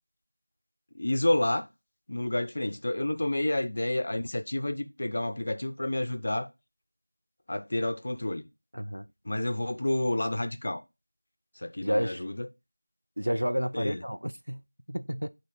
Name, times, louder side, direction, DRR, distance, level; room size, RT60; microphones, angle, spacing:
voice 1, 0.9-1.7 2.1-6.5 7.5-8.5 9.3-10.8 11.6-12.5 13.7-14.0, left 1 dB, 30° left, 0.5 m, -29 dB
voice 2, 8.7-9.1 11.8-12.2 13.2-15.3, equal, 80° right, 0.6 m, -31 dB
8.6 x 3.0 x 4.9 m
figure-of-eight pair, 175°, 0 cm